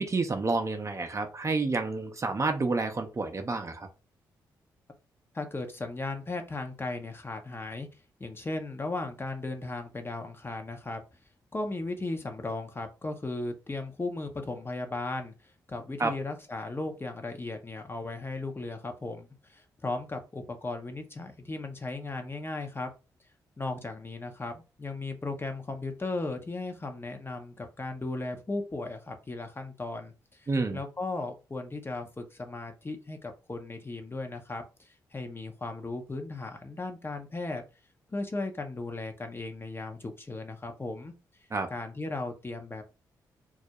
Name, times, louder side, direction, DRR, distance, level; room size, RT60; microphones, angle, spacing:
voice 1, 0.0-3.9 16.0-16.1 30.5-30.8 41.5-41.7, right 3 dB, 35° right, 6 dB, 0.5 m, -29 dB
voice 2, 5.3-7.9 8.2-11.0 11.5-22.9 23.6-37.6 38.1-41.1 41.7-42.8, left 2 dB, 25° left, 5 dB, 0.6 m, -36 dB
2.3 x 2.0 x 2.8 m, 0.31 s
hypercardioid pair, 40°, 9 cm